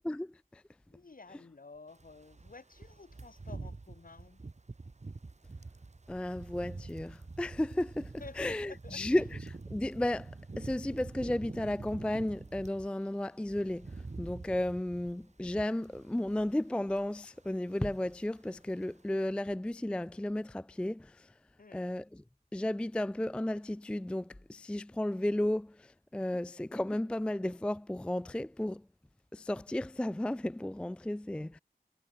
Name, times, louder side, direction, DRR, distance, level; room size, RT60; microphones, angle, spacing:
voice 1, 0.1-0.6 6.1-21.3 21.7-22.2 22.5-28.8 29.3-31.6, left 1 dB, 5° left, 0.3 m, -34 dB
voice 2, 0.9-4.4 8.2-9.3 21.6-21.9, left 3 dB, 65° left, 5.9 m, -51 dB
sound 1, 2.0-12.9 13.2-16.7 16.9-17.2 17.5-18.3 18.6-18.8, right 3 dB, 45° right, 2.0 m, -46 dB
cardioid pair, 45°, 16 cm